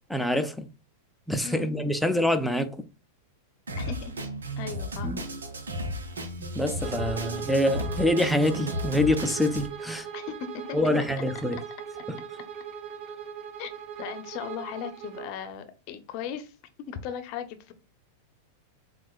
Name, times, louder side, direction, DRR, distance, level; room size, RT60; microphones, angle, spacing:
voice 1, 0.1-0.7 1.3-2.9 5.0-5.2 6.5-10.1 10.7-11.6 12.1-12.2, left 1 dB, ahead, 0.6 m, -26 dB
Drum kit, 3.7-9.7, equal, 85° right, 0.8 m, -34 dB
voice 2, 3.8-4.1 4.6-5.3 10.1-10.8 13.6-13.7 14.0-16.5 16.9-17.7, left 8 dB, 50° left, 0.8 m, -37 dB
Bowed string instrument, 6.8-15.3, right 7 dB, 50° right, 0.8 m, -39 dB
7.2 x 2.4 x 2.4 m
hypercardioid pair, 100°, 0 cm